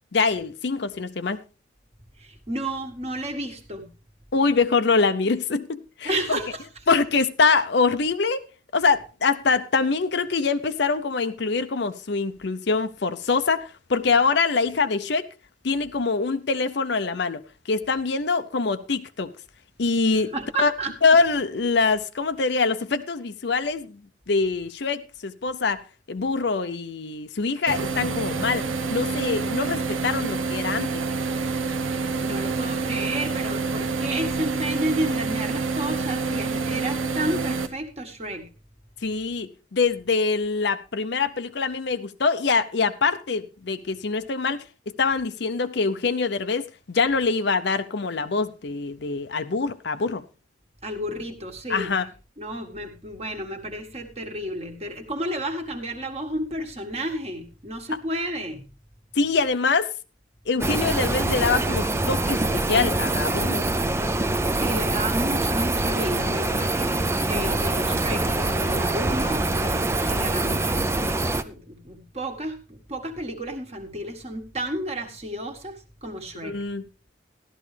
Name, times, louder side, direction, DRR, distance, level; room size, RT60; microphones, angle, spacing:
voice 1, 0.1-1.4 4.3-6.4 6.9-8.5 8.7-15.3 15.6-17.4 17.7-19.3 19.8-20.3 20.6-20.7 21.0-24.0 24.3-25.8 26.1-28.6 28.9-31.0 39.0-44.6 45.0-50.2 51.7-52.0 59.2-59.9 60.5-63.6 76.4-76.8, left 4 dB, 60° left, 0.6 m, -24 dB
voice 2, 2.2-3.9 6.0-6.7 20.1-20.9 31.9-38.5 50.8-51.9 52.4-58.7 64.6-76.6, right 1 dB, 30° right, 1.6 m, -32 dB
sound 1, 27.7-37.7, right 4 dB, 85° right, 0.9 m, -27 dB
sound 2, 60.6-71.4, right 2 dB, 15° right, 0.5 m, -24 dB
sound 3, 65.5-70.3, right 1 dB, 70° right, 1.4 m, -42 dB
13.0 x 12.0 x 3.3 m
head